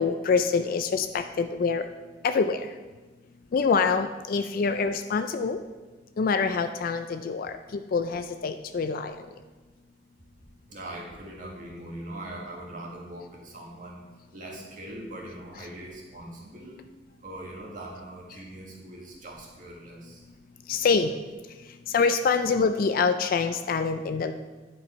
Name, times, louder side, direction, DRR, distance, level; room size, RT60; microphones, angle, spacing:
voice 1, 0.0-1.8 2.2-2.6 3.5-5.6 6.2-9.1 20.7-21.1 21.9-24.3, left 5 dB, 50° left, 9 dB, 0.3 m, -25 dB
voice 2, 10.7-14.0 14.3-16.8 17.2-20.2, right 1 dB, 45° right, -2 dB, 1.6 m, -41 dB
10.5 x 4.7 x 4.2 m, 1.3 s
head